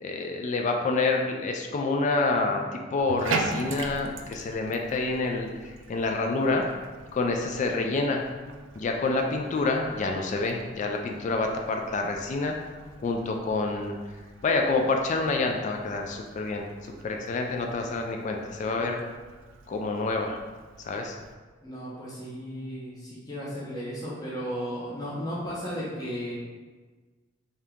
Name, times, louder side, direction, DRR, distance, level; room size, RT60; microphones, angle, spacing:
voice 1, 0.0-6.6 7.1-8.2 8.8-12.5 13.0-13.9 14.4-19.0 19.7-20.4 20.8-21.2, left 3 dB, 40° left, 2 dB, 0.3 m, -27 dB
Bathtub (filling or washing), 3.0-21.3, right 4 dB, 75° right, 0.4 m, -41 dB
voice 2, 21.6-26.3, equal, 20° left, -8 dB, 0.7 m, -35 dB
3.6 x 2.8 x 3.4 m, 1.4 s
head